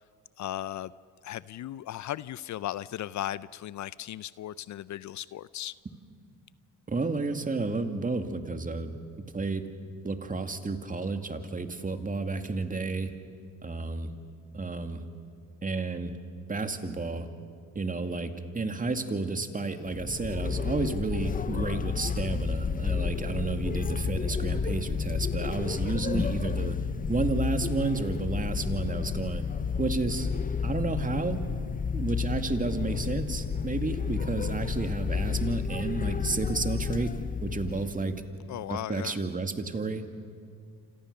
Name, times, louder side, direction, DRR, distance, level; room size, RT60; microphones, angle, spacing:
voice 1, 0.4-0.9 1.2-5.7 38.5-39.2, left 13 dB, 60° left, 19 dB, 0.6 m, -36 dB
voice 2, 6.9-9.0 9.3-9.6 10.0-13.1 13.6-14.1 14.5-15.0 15.6-16.1 16.5-17.3 17.7-26.8 27.1-29.4 29.8-30.3 30.6-31.4 31.9-37.1 37.4-38.1 38.7-40.1, right 3 dB, 25° right, 7 dB, 2.3 m, -31 dB
sound 1, 19.9-38.1, left 6 dB, 25° left, 0.8 m, -31 dB
27.5 x 27.0 x 6.7 m, 2.1 s
cardioid pair, 85°, 34 cm